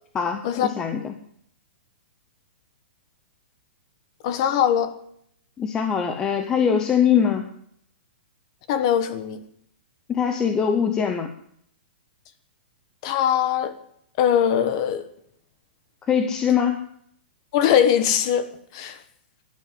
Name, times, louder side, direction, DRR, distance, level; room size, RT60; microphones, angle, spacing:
voice 1, 0.1-1.2 5.6-7.4 10.1-11.3 16.1-16.8, left 7 dB, 10° left, 0.7 m, -22 dB
voice 2, 4.2-4.9 8.7-9.4 13.0-13.7 14.2-15.0 17.5-18.5 18.7-19.0, left 9 dB, 30° left, 1.3 m, -21 dB
13.0 x 11.5 x 9.4 m
hypercardioid pair, 180°, 6 cm